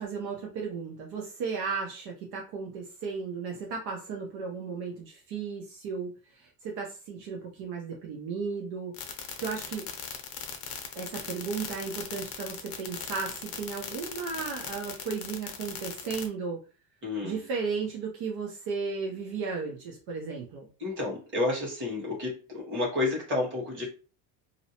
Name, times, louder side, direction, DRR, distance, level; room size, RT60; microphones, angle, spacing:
voice 1, 0.0-9.0 9.4-9.9 11.0-16.6 17.2-20.7, right 5 dB, 60° right, -1 dB, 0.7 m, -35 dB
sound 1, 8.9-16.3, left 9 dB, 55° left, 0.7 m, -38 dB
voice 2, 17.0-17.4 20.8-23.9, left 2 dB, 30° right, -3 dB, 1.2 m, -30 dB
2.6 x 2.0 x 2.8 m, 0.34 s
cardioid pair, 155°, 42 cm